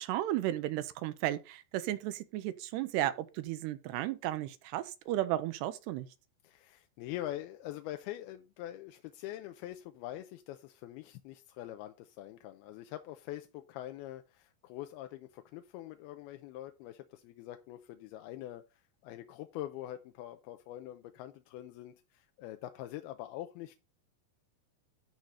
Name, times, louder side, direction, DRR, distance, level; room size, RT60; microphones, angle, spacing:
voice 1, 0.0-6.1, right 14 dB, 85° right, 2.9 m, -34 dB
voice 2, 6.4-23.8, left 13 dB, 80° left, 2.4 m, -44 dB
13.0 x 4.8 x 4.1 m
omnidirectional pair, 4.7 m